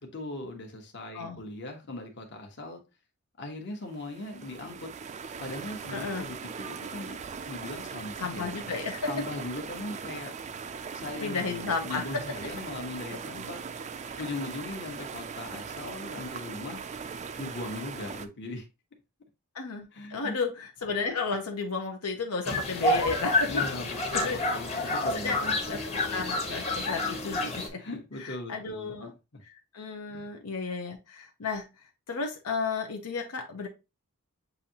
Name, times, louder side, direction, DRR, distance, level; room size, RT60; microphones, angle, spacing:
voice 1, 0.1-2.8 3.4-4.9 5.4-7.2 7.5-8.5 9.1-10.3 10.9-13.9 14.2-16.8 17.4-18.7 19.9-20.4 23.5-25.8 27.8-28.9 29.3-29.4 30.1-30.3, left 2 dB, 50° left, 1.1 m, -39 dB
sound 1, 3.9-18.3, right 6 dB, 30° right, 0.3 m, -40 dB
voice 2, 5.9-6.3 8.2-9.1 11.2-12.3 19.5-23.6 24.2-24.4 24.8-25.4 25.7-25.8 26.1-27.8 28.2-29.1 29.4-31.7 32.1-33.7, left 4 dB, 85° left, 0.8 m, -33 dB
sound 2, 22.5-27.7, left 2 dB, 30° left, 1.0 m, -29 dB
6.9 x 2.7 x 2.8 m
head